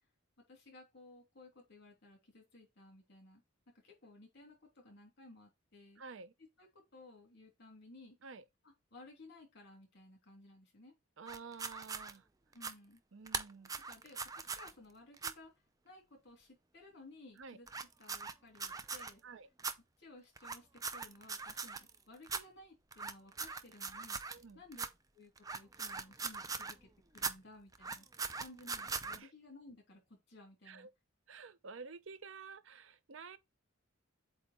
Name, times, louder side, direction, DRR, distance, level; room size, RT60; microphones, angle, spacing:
voice 1, 0.5-3.4 3.8-6.0 6.6-6.7 6.9-8.2 8.6-10.9 12.5-13.0 13.9-15.5 15.8-19.2 20.0-24.9 25.1-28.1 28.4-30.0 30.3-30.9, left 2 dB, 55° left, 2.9 m, -57 dB
voice 2, 6.0-6.3 8.2-8.4 11.2-12.3 13.1-13.8 17.4-17.6 19.2-19.5 24.3-24.6 29.2-29.3 30.7-30.9 31.3-33.4, right 5 dB, 70° right, 0.6 m, -51 dB
sound 1, 11.3-12.1 12.5-12.7 13.3-14.7 15.2-15.3 17.7-19.1 19.6-19.7 20.4-22.0 22.2-22.4 22.9-24.4 24.7-24.9 25.4-26.8 27.1-27.3 27.7-29.2, right 5 dB, 15° right, 0.5 m, -41 dB
7.9 x 2.8 x 4.2 m
head